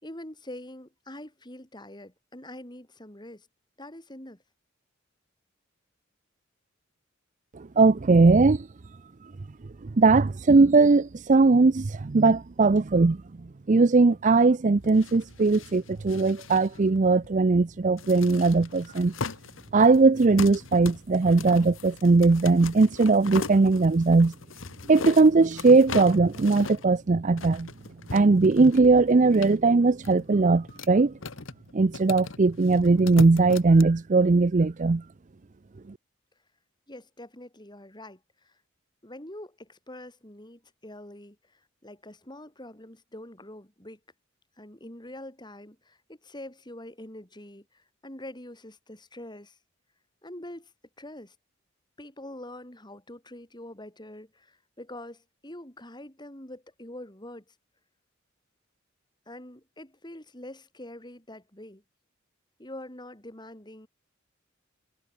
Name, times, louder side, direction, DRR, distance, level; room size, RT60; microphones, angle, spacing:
voice 1, 0.0-3.5 3.8-4.4 36.9-38.6 39.0-44.0 44.6-49.6 50.2-50.7 51.0-51.3 52.0-57.5 59.3-61.8 62.6-63.9, left 1 dB, 20° left, 5.1 m, -44 dB
voice 2, 7.5-8.7 10.0-13.2 13.7-19.1 19.7-24.3 24.9-27.7 28.1-31.1 31.7-35.0, right 3 dB, 40° right, 0.5 m, -20 dB
sound 1, 14.8-33.8, left 4 dB, 75° left, 1.4 m, -40 dB
head